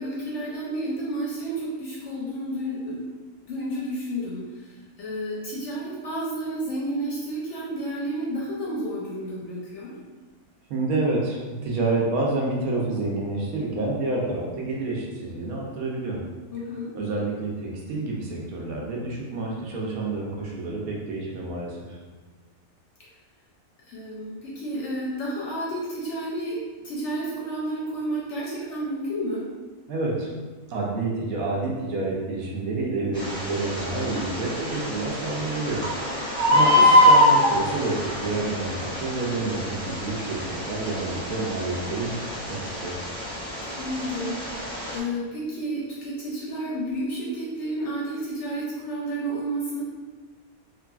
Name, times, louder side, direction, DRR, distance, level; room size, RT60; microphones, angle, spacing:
voice 1, 0.0-3.0 3.5-4.5 5.0-9.9 16.5-16.9 23.9-29.5 39.1-39.4 43.8-44.4 44.7-49.8, right 1 dB, 65° left, -5 dB, 0.7 m, -31 dB
voice 2, 10.7-16.2 16.9-22.0 29.9-30.3 30.7-35.8 36.2-42.9, right 2 dB, 75° right, -3 dB, 1.1 m, -28 dB
Bird, 33.1-45.0, left 1 dB, 5° left, 0.3 m, -24 dB
2.9 x 2.4 x 2.3 m, 1.3 s
omnidirectional pair, 1.6 m